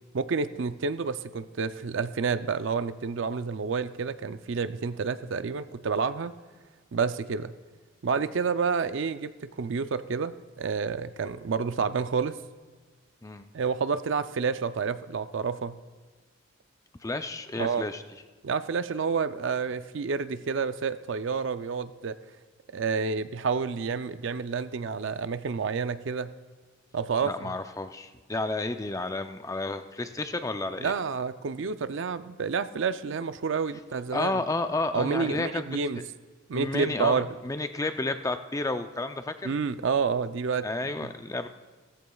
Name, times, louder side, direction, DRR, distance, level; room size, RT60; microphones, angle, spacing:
voice 1, 0.1-6.3 6.9-7.5 8.0-9.3 9.6-12.4 13.5-15.8 17.6-17.8 18.4-22.2 22.7-26.3 26.9-27.5 30.8-34.4 34.9-36.0 36.5-37.3 39.4-40.7, right 5 dB, 60° right, 12 dB, 0.4 m, -29 dB
voice 2, 17.0-18.0 27.2-30.9 34.1-35.7 36.5-39.5 40.6-41.5, left 2 dB, 15° left, 8 dB, 0.4 m, -31 dB
17.0 x 14.5 x 2.3 m, 1.4 s
head